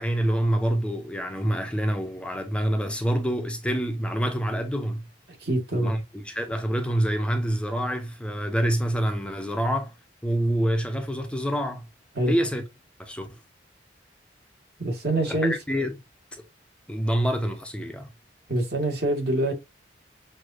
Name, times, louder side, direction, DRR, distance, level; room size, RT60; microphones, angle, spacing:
voice 1, 0.0-5.0 5.7-9.9 10.2-11.9 12.3-12.6 13.0-13.3 15.3-15.9 16.3-16.4 16.9-18.1, equal, 5° left, 0.7 m, -26 dB
voice 2, 5.4-5.9 12.1-12.3 14.8-15.5 18.5-19.5, right 1 dB, 60° right, 1.8 m, -25 dB
6.3 x 2.7 x 2.5 m
head